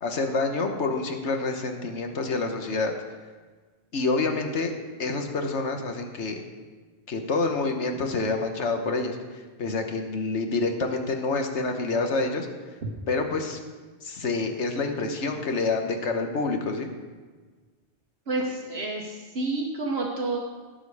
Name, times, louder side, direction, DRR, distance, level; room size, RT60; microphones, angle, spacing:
voice 1, 0.0-2.9 3.9-4.7 5.0-6.4 7.1-9.2 9.6-12.5 13.1-13.6 14.0-16.9, left 3 dB, 80° left, 5 dB, 1.5 m, -27 dB
voice 2, 18.3-20.4, right 2 dB, 65° right, 0 dB, 1.3 m, -29 dB
17.5 x 6.4 x 4.8 m, 1.4 s
omnidirectional pair, 1.2 m